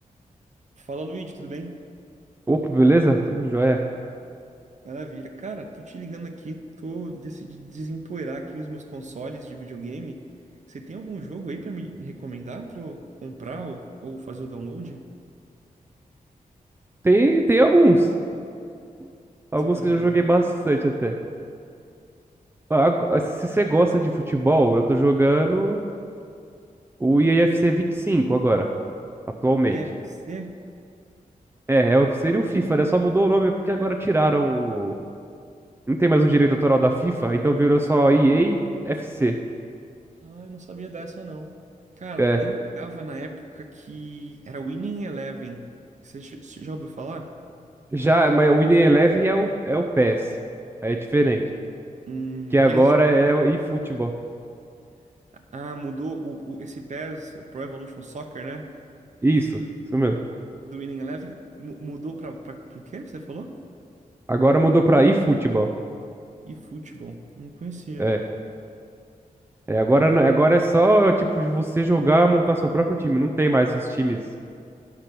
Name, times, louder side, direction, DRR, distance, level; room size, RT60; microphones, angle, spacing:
voice 1, 0.8-1.7 4.8-10.2 10.7-15.0 19.6-20.4 29.6-30.6 40.2-41.6 42.0-45.7 46.0-47.3 52.1-53.4 55.3-58.7 60.6-63.6 66.4-68.1, right 3 dB, 55° right, 4 dB, 0.8 m, -35 dB
voice 2, 2.5-3.8 17.0-18.1 19.5-21.1 22.7-25.8 27.0-28.7 29.4-29.8 31.7-35.0 35.9-39.4 42.2-42.4 47.9-50.3 50.8-51.4 52.5-54.1 59.2-59.6 59.9-60.2 64.3-65.7 68.0-68.2 69.7-74.2, right 1 dB, 15° right, 3 dB, 0.5 m, -19 dB
9.2 x 5.9 x 6.8 m, 2.4 s
wide cardioid pair, 90°, 15 cm